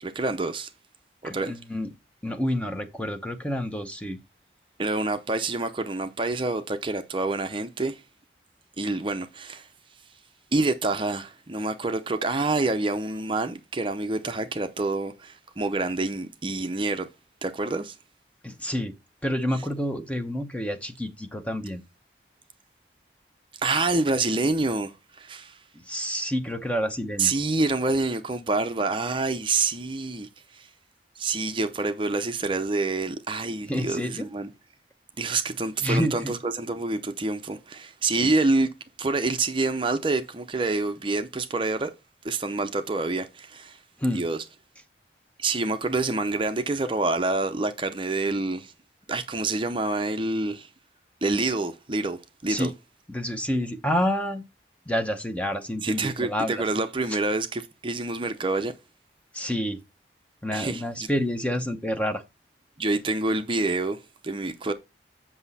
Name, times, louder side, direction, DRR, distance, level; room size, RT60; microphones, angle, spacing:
voice 1, 0.0-0.7 1.2-1.5 4.8-8.0 8.8-9.7 10.5-17.1 17.4-18.0 23.6-25.6 27.2-30.7 31.2-34.5 35.2-38.7 39.0-41.9 42.2-43.8 44.1-44.4 45.4-48.7 49.1-50.7 51.2-52.7 55.8-58.8 60.5-61.1 62.8-64.7, right 3 dB, 30° right, 0.6 m, -27 dB
voice 2, 1.2-1.9 2.2-4.2 18.4-18.9 19.2-21.8 25.7-27.3 33.7-34.3 35.8-36.3 38.1-38.3 44.0-44.2 52.5-52.7 53.1-54.4 54.9-56.6 59.3-59.8 60.4-62.2, equal, 5° left, 0.8 m, -28 dB
7.8 x 6.0 x 4.1 m
head